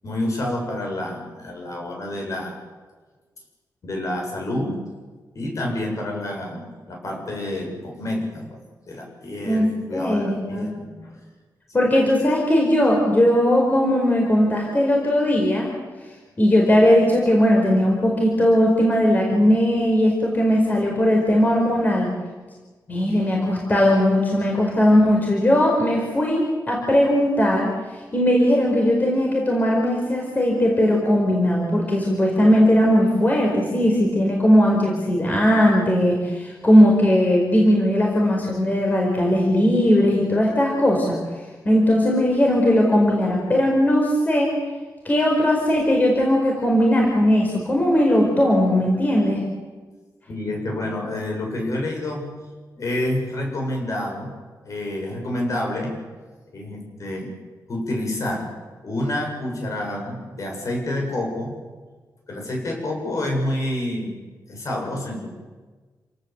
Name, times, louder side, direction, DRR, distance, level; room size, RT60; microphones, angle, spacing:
voice 1, 0.0-2.6 3.8-4.8 5.3-8.6 8.9-11.2 11.8-11.9 50.3-52.4 52.8-54.4 54.6-56.0 56.5-57.3 57.7-58.5 58.8-61.6 62.3-64.2 64.5-65.3, left 1 dB, 50° left, 1 dB, 7.6 m, -28 dB
voice 2, 9.4-10.8 11.7-15.7 16.4-22.1 22.9-27.7 28.1-41.2 41.6-44.6 45.0-49.4, equal, 25° left, -1 dB, 4.8 m, -18 dB
28.5 x 18.0 x 8.1 m, 1.3 s
wide cardioid pair, 170°, 7 cm